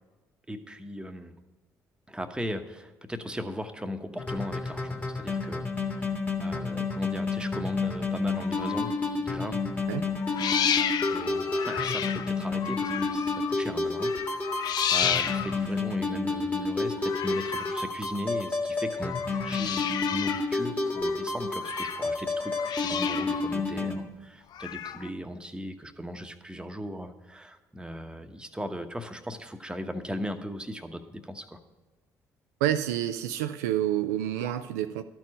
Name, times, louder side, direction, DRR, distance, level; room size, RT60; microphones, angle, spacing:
voice 1, 0.5-1.3 2.1-8.9 9.2-9.6 9.9-10.0 10.7-31.6, equal, 10° right, 7 dB, 1.0 m, -38 dB
sound 1, 4.2-24.0, left 3 dB, 20° left, 1.8 m, -30 dB
sound 2, 8.3-9.1 10.2-13.6 14.0-15.8 17.0-17.9 19.0-20.6 20.8-22.1 22.4-23.6 24.5-25.1, left 9 dB, 55° left, 0.5 m, -32 dB
voice 2, 32.6-35.0, right 12 dB, 85° right, 9 dB, 0.4 m, -28 dB
12.5 x 4.5 x 8.5 m, 1.2 s
hypercardioid pair, 50°, 8 cm